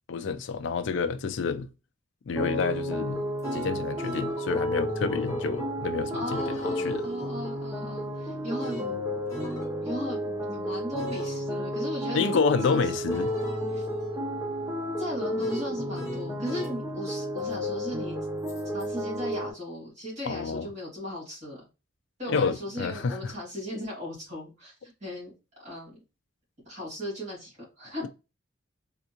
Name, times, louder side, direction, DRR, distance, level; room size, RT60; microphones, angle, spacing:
voice 1, 0.1-1.7 2.3-3.2 3.5-7.0 12.1-13.3 20.3-20.7 22.3-23.3, left 5 dB, 60° left, 0.4 m, -29 dB
sound 1, 2.4-19.5, equal, 10° right, 0.7 m, -32 dB
sound 2, 3.1-5.8 6.3-10.4 11.0-11.3 12.6-16.8 18.5-18.9, right 1 dB, 15° left, 1.1 m, -42 dB
voice 2, 6.1-9.1 9.8-12.4 12.7-12.8 13.7-13.9 15.0-18.2 18.7-21.6 22.2-25.3 25.6-26.0 26.7-28.1, left 1 dB, 35° right, 2.0 m, -37 dB
3.5 x 2.4 x 2.8 m
head